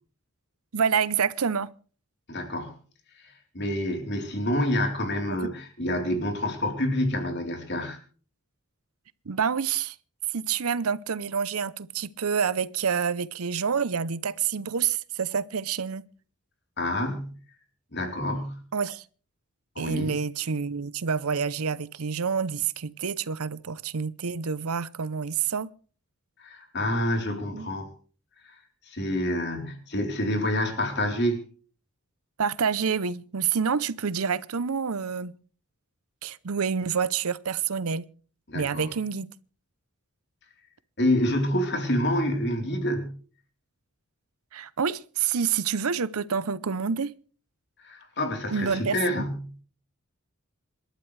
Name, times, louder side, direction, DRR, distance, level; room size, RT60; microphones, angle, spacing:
voice 1, 0.7-1.7 5.4-5.5 9.3-10.0 10.3-16.0 18.7-19.0 19.8-25.7 27.5-27.7 32.4-35.3 36.2-38.1 38.5-39.3 44.5-47.1 48.5-49.2, right 6 dB, 85° right, 0.7 m, -28 dB
voice 2, 2.3-2.7 3.5-8.0 16.8-17.3 17.9-18.6 19.8-20.2 26.4-27.9 28.4-28.6 28.9-31.4 38.5-38.9 41.0-43.2 47.8-49.4, left 1 dB, 50° left, 3.8 m, -27 dB
27.0 x 12.5 x 3.3 m
head